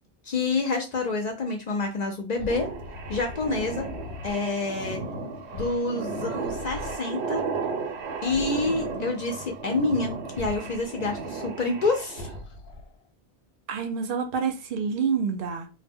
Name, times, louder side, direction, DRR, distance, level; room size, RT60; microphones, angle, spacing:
voice 1, 0.3-2.7 3.1-3.9 4.2-5.0 5.5-7.4 8.2-12.3, left 3 dB, 55° left, 0.5 m, -28 dB
sound 1, 2.3-4.4 5.5-5.9 6.2-7.0 8.2-9.1 10.3-10.9 12.1-13.0, left 3 dB, 85° left, 0.9 m, -40 dB
sound 2, 2.5-12.4, right 4 dB, 90° right, 0.9 m, -34 dB
voice 2, 13.7-15.7, right 6 dB, 65° right, 0.7 m, -28 dB
2.1 x 2.1 x 3.4 m
omnidirectional pair, 1.1 m